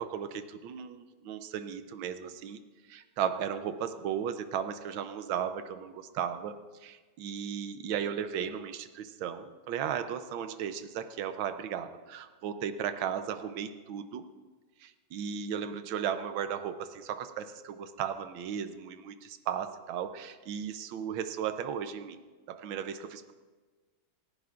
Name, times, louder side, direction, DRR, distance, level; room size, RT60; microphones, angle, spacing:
voice 1, 0.0-2.6 2.9-6.5 6.8-14.2 14.8-22.2 22.5-23.1, right 8 dB, 85° right, 10 dB, 1.5 m, -35 dB
27.5 x 10.5 x 2.5 m, 1.4 s
omnidirectional pair, 2.1 m